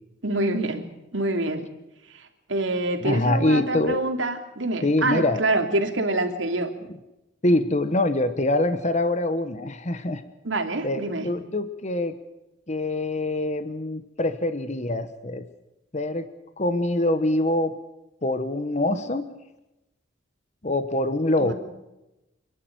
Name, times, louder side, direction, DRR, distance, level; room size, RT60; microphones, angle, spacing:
voice 1, 0.2-0.9 1.1-1.7 2.1-6.7 10.4-11.3 21.4-21.5, right 2 dB, 90° right, 5 dB, 3.0 m, -26 dB
voice 2, 3.0-4.0 4.8-5.4 7.4-10.2 10.8-12.2 12.7-15.5 15.9-16.3 16.6-17.8 18.2-19.3 20.6-21.5, left 1 dB, 35° left, 11 dB, 1.1 m, -24 dB
27.5 x 11.5 x 9.3 m, 0.96 s
head